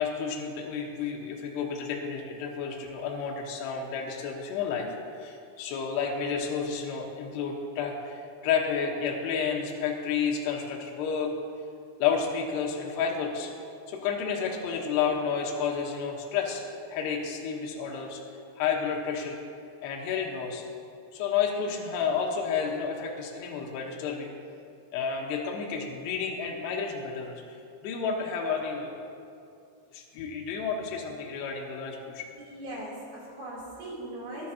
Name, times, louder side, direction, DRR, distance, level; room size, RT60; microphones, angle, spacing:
voice 1, 0.0-4.9 5.1-11.3 12.0-13.5 13.9-16.6 16.9-18.2 18.6-19.4 19.8-20.6 21.1-24.3 24.9-27.6 27.8-29.0 29.9-32.3, left 6 dB, 75° left, -1 dB, 3.1 m, -31 dB
voice 2, 32.4-34.5, right 1 dB, 45° right, -6 dB, 4.1 m, -39 dB
20.5 x 10.5 x 2.8 m, 2.6 s
omnidirectional pair, 5.2 m